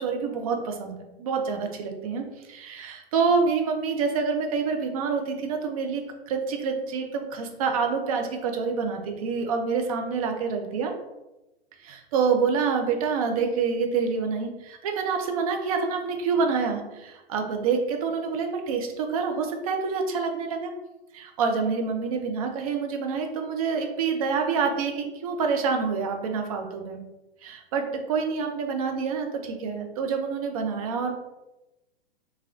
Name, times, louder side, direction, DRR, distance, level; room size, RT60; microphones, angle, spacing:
voice 1, 0.0-10.9 11.8-20.7 21.1-27.0 27.4-31.1, right 5 dB, 35° right, 4 dB, 0.4 m, -27 dB
2.9 x 2.9 x 2.3 m, 1.0 s
figure-of-eight pair, 110°, 32 cm